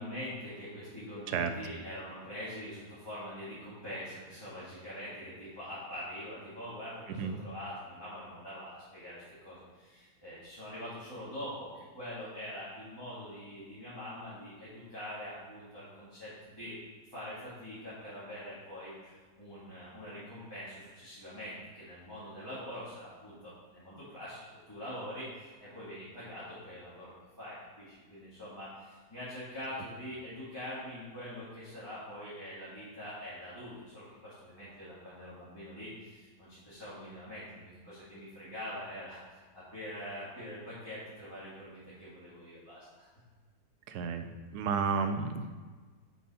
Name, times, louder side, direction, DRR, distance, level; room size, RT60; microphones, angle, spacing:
voice 1, 0.0-16.7 17.1-43.1, equal, 15° left, -13 dB, 1.9 m, -44 dB
voice 2, 7.1-7.4 43.9-45.6, right 5 dB, 85° right, 8 dB, 1.2 m, -32 dB
7.0 x 4.8 x 4.2 m, 1.4 s
omnidirectional pair, 1.7 m